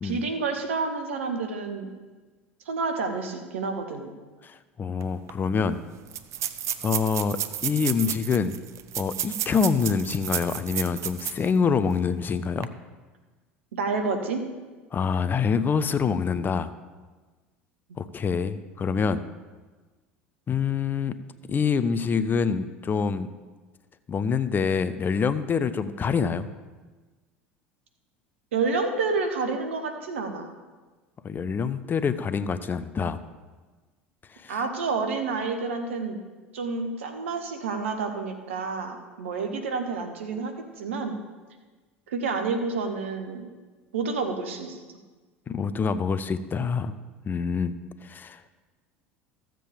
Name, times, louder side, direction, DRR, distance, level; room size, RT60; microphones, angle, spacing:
voice 1, 0.0-1.9 2.7-4.1 13.7-14.4 28.5-30.5 34.5-36.2 36.5-41.2 42.1-43.4 43.9-44.8, right 4 dB, 80° right, 5 dB, 1.2 m, -29 dB
voice 2, 4.4-5.8 6.8-8.6 8.9-12.7 14.9-16.7 18.0-19.2 20.5-21.2 21.5-23.3 24.1-26.5 31.2-33.2 34.3-34.6 45.5-46.9 47.2-47.7 48.0-48.4, left 6 dB, 30° left, 13 dB, 0.6 m, -26 dB
sound 1, 5.0-5.1 5.3-5.4 6.1-11.5 11.9-12.0 12.5-12.6, right 11 dB, 45° right, 0.6 m, -32 dB
15.0 x 7.5 x 3.5 m, 1.3 s
hypercardioid pair, 75°, 7 cm